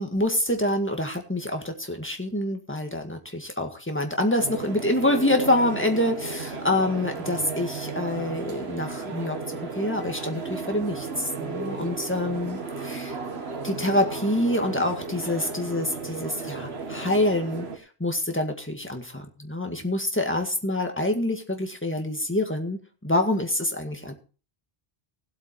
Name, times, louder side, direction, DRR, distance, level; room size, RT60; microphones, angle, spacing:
voice 1, 0.0-9.4 9.8-13.2 13.6-24.1, left 1 dB, 10° left, 4 dB, 1.9 m, -26 dB
sound 1, 4.4-17.8, right 4 dB, 70° right, 1.8 m, -34 dB
16.5 x 8.3 x 4.4 m, 0.36 s
omnidirectional pair, 1.1 m